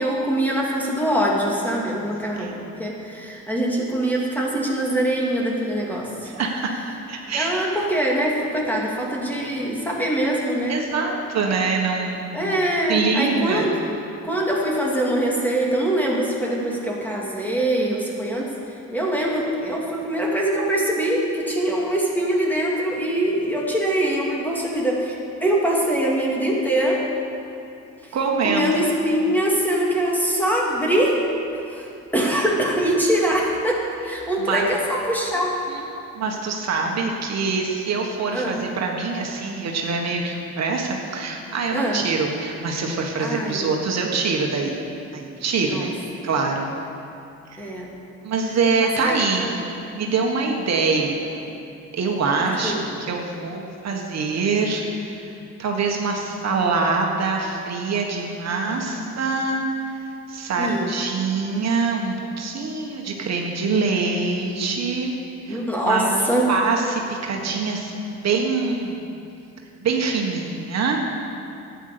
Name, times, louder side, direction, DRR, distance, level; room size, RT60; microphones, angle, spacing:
voice 1, 0.0-2.5 2.8-6.1 7.3-10.8 12.3-13.8 14.2-18.5 18.9-25.2 25.4-27.0 28.4-31.2 31.7-31.9 32.1-35.6 38.3-38.6 41.7-42.0 43.2-43.7 45.7-45.9 47.6-47.9 48.8-49.5 52.6-52.8 58.9-59.0 60.6-60.9 65.5-66.5, right 1 dB, 5° left, -3 dB, 2.6 m, -23 dB
voice 2, 2.3-2.6 6.2-7.6 10.7-12.5 12.9-13.7 28.1-28.7 34.4-34.7 35.7-44.8 45.1-45.9 46.2-46.7 47.5-47.7 48.2-49.6 49.9-51.5 51.9-65.1 65.5-69.1 69.8-71.0, right 4 dB, 60° right, 1 dB, 1.6 m, -25 dB
11.5 x 9.4 x 6.9 m, 2.6 s
cardioid pair, 90°, 30 cm